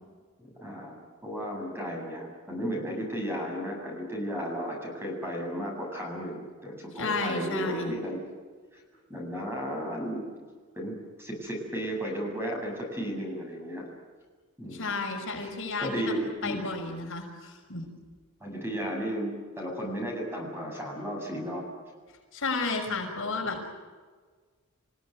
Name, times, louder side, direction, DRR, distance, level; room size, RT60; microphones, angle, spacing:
voice 1, 0.4-8.2 9.1-10.2 10.7-13.9 14.6-14.9 15.4-15.5 15.8-16.7 18.4-21.6, equal, 10° right, 0 dB, 8.0 m, -34 dB
voice 2, 7.0-7.9 14.7-16.1 16.4-17.8 22.3-23.7, left 3 dB, 60° left, 1 dB, 6.0 m, -32 dB
29.0 x 17.0 x 9.6 m, 1.5 s
head